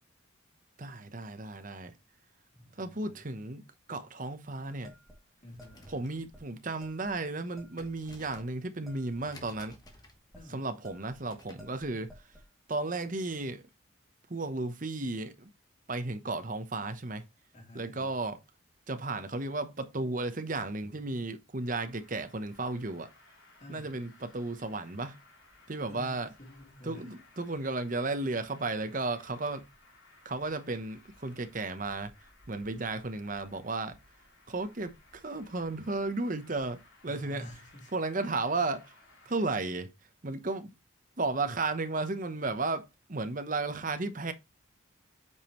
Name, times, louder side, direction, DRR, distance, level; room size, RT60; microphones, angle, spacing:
voice 1, 0.8-1.9 2.8-3.6 3.9-4.9 5.9-9.8 10.5-12.1 12.7-13.6 14.3-15.5 15.9-17.2 17.7-18.4 18.9-23.1 23.7-25.2 25.7-26.3 26.8-29.6 30.2-32.1 32.5-34.0 34.5-37.5 37.9-38.8 39.3-39.9 40.2-40.7 41.2-44.3, right 3 dB, 40° right, 0.9 m, -34 dB
voice 2, 2.5-3.2 5.4-6.1 10.3-10.6 17.5-18.1 23.6-23.9 25.9-27.2 37.1-37.9, equal, 35° left, 2.8 m, -49 dB
sound 1, 4.8-6.0 6.3-6.4 6.8-7.2 7.6-8.5 8.9-10.5 10.8-11.2 11.6-12.5, left 1 dB, ahead, 2.4 m, -54 dB
sound 2, 5.4-11.8, left 2 dB, 20° left, 1.1 m, -57 dB
Traffic noise roadway noise, 21.6-39.5, left 2 dB, 75° left, 2.7 m, -60 dB
8.2 x 5.2 x 3.1 m
head